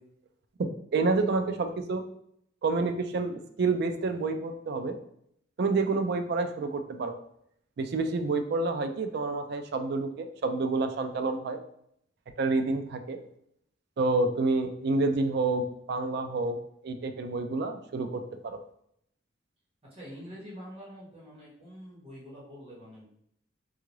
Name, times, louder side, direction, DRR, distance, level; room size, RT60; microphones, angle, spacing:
voice 1, 0.6-2.0 2.6-5.0 5.6-7.2 7.8-11.6 12.4-13.2 14.0-16.6 16.8-18.6, right 3 dB, 60° right, 7 dB, 0.3 m, -28 dB
voice 2, 19.8-23.0, equal, 30° right, -7 dB, 1.4 m, -46 dB
3.7 x 2.4 x 3.1 m, 0.72 s
head